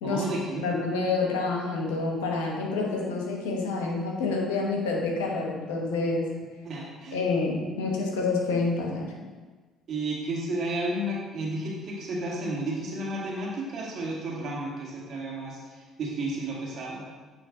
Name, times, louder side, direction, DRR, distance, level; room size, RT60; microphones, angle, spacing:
voice 1, 0.0-0.6 6.6-7.2 9.9-15.6 16.0-17.0, right 1 dB, 55° right, -3 dB, 1.7 m, -32 dB
voice 2, 0.6-6.3 7.1-9.1, left 3 dB, 85° left, 0 dB, 1.1 m, -28 dB
8.8 x 3.1 x 3.7 m, 1.3 s
hypercardioid pair, 60°, 0 cm